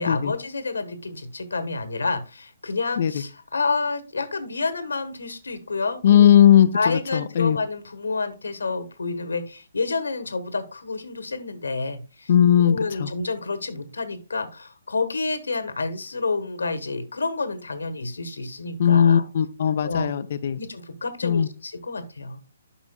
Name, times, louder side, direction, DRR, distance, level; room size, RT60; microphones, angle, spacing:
voice 1, 0.0-6.3 6.7-12.3 12.6-19.2 19.8-20.1 20.6-22.4, left 3 dB, 70° left, 11 dB, 1.2 m, -29 dB
voice 2, 6.0-7.6 12.3-13.1 18.8-20.6 21.2-21.5, left 9 dB, 50° left, 12 dB, 0.5 m, -18 dB
10.0 x 6.0 x 2.2 m, 0.32 s
figure-of-eight pair, 135°, 0 cm